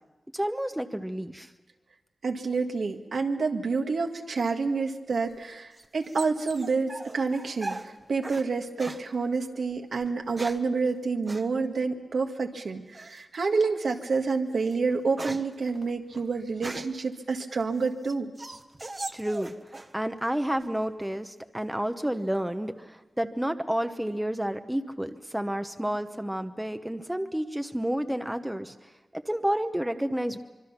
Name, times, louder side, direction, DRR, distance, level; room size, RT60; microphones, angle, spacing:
voice 1, 0.3-1.5 19.1-19.5 19.9-28.7 29.1-30.4, right 1 dB, 5° right, 8 dB, 0.9 m, -30 dB
voice 2, 2.2-18.3, right 4 dB, 75° right, 4 dB, 1.7 m, -28 dB
sound 1, 5.2-8.5 8.8-9.1 10.0-10.7 11.3-11.5 12.9-13.3 13.9-14.0 14.5-17.1 17.6-19.9 20.2-20.8, right 2 dB, 30° right, 1.0 m, -40 dB
25.0 x 24.0 x 5.9 m, 1.1 s
wide cardioid pair, 90°, 0 cm